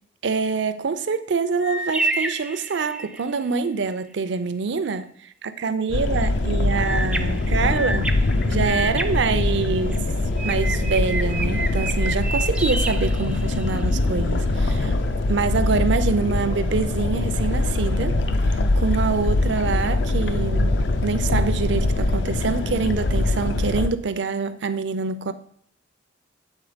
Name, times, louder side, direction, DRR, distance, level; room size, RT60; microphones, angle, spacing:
voice 1, 0.2-5.1 5.4-10.0 10.4-15.0 15.3-18.2 18.8-25.3, right 4 dB, 65° right, 0.5 m, -25 dB
sound 1, 1.6-3.3 6.8-10.0 10.4-13.8, right 2 dB, 5° right, 0.3 m, -30 dB
sound 2, 5.9-23.9, left 2 dB, 65° left, 0.5 m, -23 dB
8.3 x 3.8 x 5.0 m
head